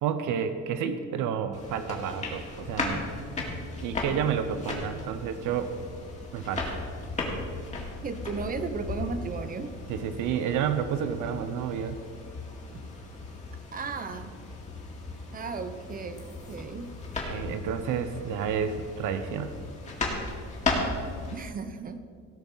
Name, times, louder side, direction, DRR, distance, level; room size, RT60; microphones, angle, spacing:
voice 1, 0.0-3.1 3.8-5.7 6.3-6.8 9.9-12.0 17.2-19.5, right 8 dB, 85° right, 10 dB, 0.8 m, -30 dB
sound 1, 1.5-21.4, left 2 dB, 25° left, 2.0 m, -36 dB
voice 2, 8.0-9.7 13.7-14.4 15.3-16.9 21.3-22.0, right 4 dB, 30° right, 9 dB, 0.6 m, -35 dB
17.5 x 5.8 x 5.5 m, 2.1 s
cardioid pair, 165°, 30 cm